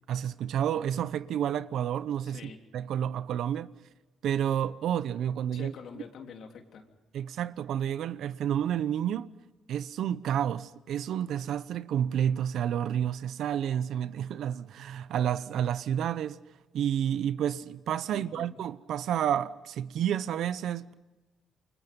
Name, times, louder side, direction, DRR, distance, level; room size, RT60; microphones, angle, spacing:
voice 1, 0.1-3.7 4.2-5.7 7.1-9.4 9.7-16.4 16.7-20.9, right 9 dB, 75° right, 0.9 m, -30 dB
voice 2, 2.2-2.6 5.5-6.8 18.1-18.6, left 6 dB, 70° left, 3.3 m, -46 dB
28.5 x 24.5 x 5.4 m
cardioid pair, 90°, 0 cm